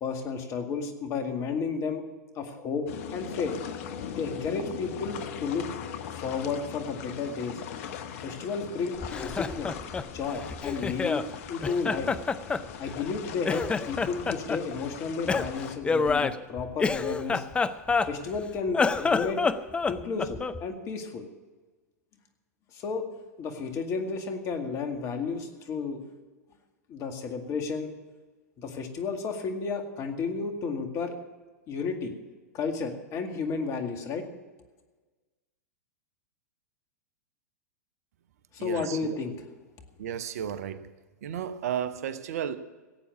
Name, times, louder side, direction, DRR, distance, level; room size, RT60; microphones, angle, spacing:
voice 1, 0.0-2.0 2.4-2.9 3.1-3.5 4.2-5.7 6.1-7.6 8.2-9.8 10.1-11.2 11.5-12.1 12.8-17.4 18.0-19.4 19.9-21.3 22.7-23.0 23.4-26.0 26.9-27.9 28.6-31.1 31.7-32.1 32.5-34.3 38.5-39.3, left 5 dB, 35° left, 5 dB, 2.1 m, -32 dB
sound 1, 2.9-15.8, left 8 dB, 55° left, 1.0 m, -40 dB
Laughter, 9.0-11.3 11.6-13.2 13.4-14.6 15.3-18.4 18.7-20.6, left 4 dB, 10° left, 0.5 m, -28 dB
voice 2, 38.6-39.2 40.0-40.9 41.2-42.6, right 9 dB, 60° right, 14 dB, 0.8 m, -33 dB
17.5 x 8.5 x 7.0 m, 1.3 s
figure-of-eight pair, 100°, 9 cm